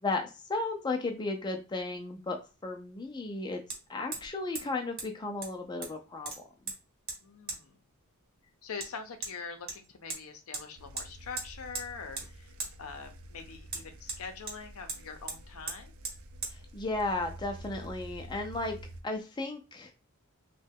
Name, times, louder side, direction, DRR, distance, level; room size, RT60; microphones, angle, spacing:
voice 1, 0.0-3.6 3.9-6.3 16.7-18.8 19.0-19.9, left 2 dB, 20° left, 4 dB, 0.4 m, -34 dB
Hammer, 1.8-1.9 3.7-3.8 4.1-4.3 4.6-4.7 5.0-5.1 5.4-6.0 6.3-6.8 7.1-7.2 7.5-7.6 8.8-8.9 9.2-9.3 9.7-10.2 10.5-10.7 11.0-11.1 11.4-11.9 12.2-12.3 12.6-12.7 13.7-14.6 14.9-15.0 15.3-15.4 15.7-15.8 16.0-16.2 16.4-16.5, right 4 dB, 45° right, 1.0 m, -38 dB
voice 2, 7.2-7.8 8.6-15.9, left 5 dB, 70° left, 7 dB, 0.6 m, -44 dB
sound 1, 10.8-19.0, right 1 dB, 65° right, 0.5 m, -49 dB
3.2 x 2.2 x 3.4 m, 0.31 s
head